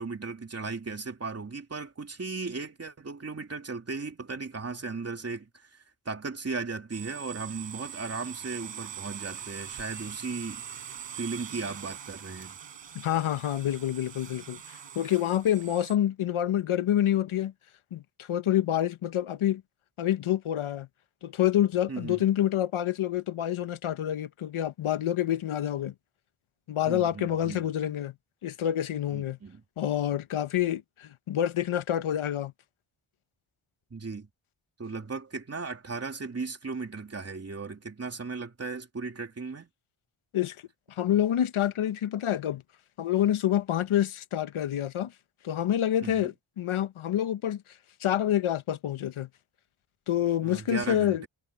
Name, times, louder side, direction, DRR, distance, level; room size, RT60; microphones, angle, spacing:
voice 1, 0.0-10.8 11.2-12.6 21.9-22.2 26.9-27.7 29.1-29.6 33.9-34.3 34.8-39.7 46.0-46.3 50.4-51.3, right 4 dB, 30° right, 3.3 m, -36 dB
sound 1, 6.9-16.0, right 9 dB, 65° right, 4.9 m, -43 dB
voice 2, 12.9-17.5 17.9-19.6 20.0-20.9 21.2-25.9 26.7-28.1 28.4-29.4 29.8-32.5 40.3-40.6 40.9-42.6 43.0-45.1 45.4-47.6 48.0-49.3 50.1-51.2, left 11 dB, 80° left, 1.1 m, -27 dB
wide cardioid pair, 160°, 48 cm